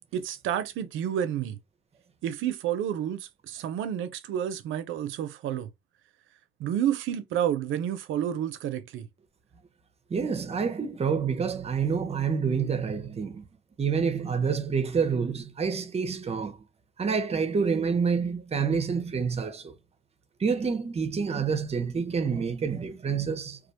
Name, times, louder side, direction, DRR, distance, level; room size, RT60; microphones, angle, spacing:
voice 1, 0.1-1.6 2.2-5.7 6.6-9.1, right 10 dB, 85° right, 0.5 m, -30 dB
voice 2, 10.1-13.4 13.8-16.6 17.0-19.8 20.4-23.6, right 6 dB, 30° right, 0.5 m, -28 dB
2.4 x 2.1 x 2.7 m
cardioid pair, 90°, 20 cm